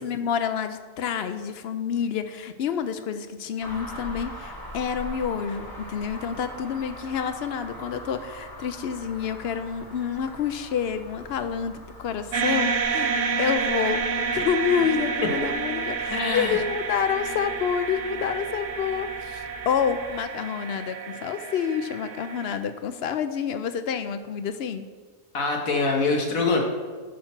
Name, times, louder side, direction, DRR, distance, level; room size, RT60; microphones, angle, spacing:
voice 1, 0.0-13.1 13.4-24.9, left 7 dB, 65° left, 10 dB, 0.6 m, -28 dB
sound 1, 3.6-20.2, equal, 15° left, 1.1 m, -43 dB
sound 2, 12.3-22.6, right 5 dB, 75° right, 1.1 m, -29 dB
voice 2, 16.1-16.6 25.3-26.6, left 3 dB, 85° left, 1 dB, 1.8 m, -24 dB
8.5 x 5.9 x 4.4 m, 1.5 s
omnidirectional pair, 1.4 m